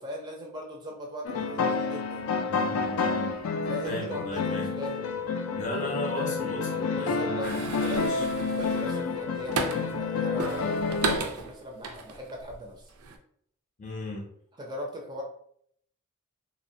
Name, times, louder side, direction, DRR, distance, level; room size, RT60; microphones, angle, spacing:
voice 1, 0.0-2.3 3.7-5.1 6.9-7.5 7.8-12.8 14.6-15.2, equal, 20° right, 0 dB, 0.4 m, -39 dB
sound 1, 1.2-11.2, left 4 dB, 80° left, 0.3 m, -29 dB
voice 2, 2.5-3.5 3.8-4.7 5.6-8.2 13.8-14.3, left 1 dB, 35° left, 0 dB, 0.5 m, -36 dB
sound 2, 7.4-10.0 10.4-12.5 12.9-13.2, right 4 dB, 85° right, 0.4 m, -34 dB
3.0 x 2.1 x 2.6 m, 0.67 s
head